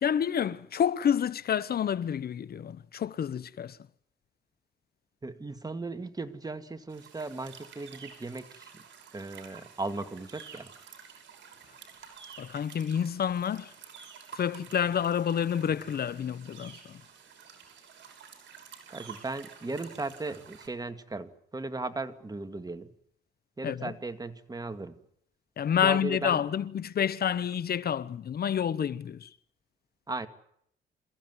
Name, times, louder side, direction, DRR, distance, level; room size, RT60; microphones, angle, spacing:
voice 1, 0.0-3.8 12.4-13.7 14.3-17.0 23.6-23.9 25.6-29.3, left 8 dB, 50° left, 0.9 m, -29 dB
voice 2, 5.2-8.7 9.1-10.7 18.9-22.9 23.6-25.0 25.8-26.4 30.1-30.3, right 3 dB, 20° right, 2.1 m, -37 dB
sound 1, 6.9-20.7, right 7 dB, 65° right, 6.1 m, -50 dB
27.5 x 15.0 x 9.7 m
cardioid pair, 90°, 20 cm